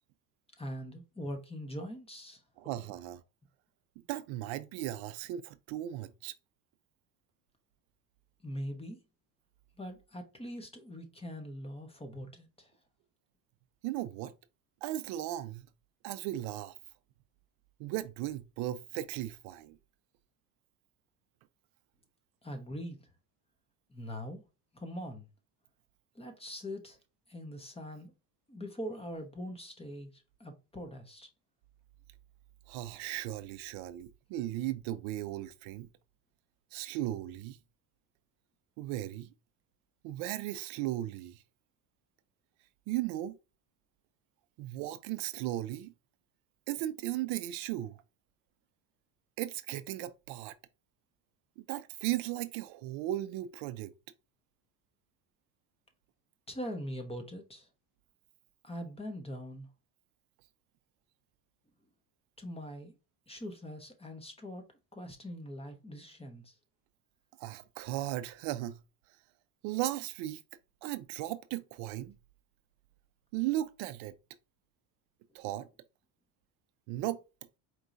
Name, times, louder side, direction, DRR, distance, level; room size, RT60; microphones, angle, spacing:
voice 1, 0.6-2.4 8.4-9.0 9.8-12.7 22.4-23.0 23.9-24.4 24.7-25.3 26.1-27.0 27.3-28.1 28.5-31.3 56.5-57.7 58.6-59.7 62.4-62.9 63.3-64.6 64.9-66.5, equal, 10° left, 0.9 m, -42 dB
voice 2, 2.6-3.2 4.1-6.3 13.8-14.3 14.8-15.6 16.0-16.8 17.8-19.8 32.7-35.9 36.7-37.6 38.8-39.3 40.0-41.4 42.9-43.4 44.6-45.9 46.7-48.0 49.4-50.5 51.6-53.9 67.4-68.8 69.6-70.4 70.8-72.2 73.3-74.1 75.3-75.7 76.9-77.2, right 14 dB, 70° right, 0.6 m, -36 dB
4.6 x 3.0 x 2.5 m
supercardioid pair, 105°, 48 cm